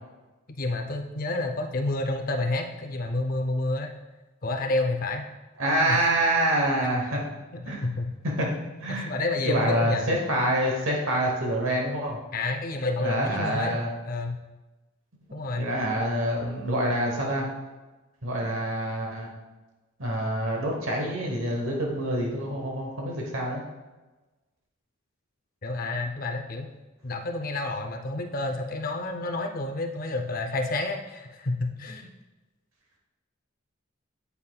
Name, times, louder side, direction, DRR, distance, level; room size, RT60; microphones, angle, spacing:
voice 1, 0.5-3.9 4.4-5.3 5.7-6.0 7.5-8.1 8.9-10.1 12.3-13.8 14.1-14.4 15.3-15.7 25.6-26.7 27.0-32.1, left 2 dB, 40° left, 4 dB, 0.6 m, -29 dB
voice 2, 5.6-7.2 7.7-7.9 8.2-8.5 8.8-9.1 9.4-12.2 13.0-13.9 15.3-17.5 18.2-19.3 20.0-23.6, right 1 dB, 70° right, -1 dB, 1.0 m, -26 dB
8.3 x 5.5 x 2.3 m, 1.2 s
head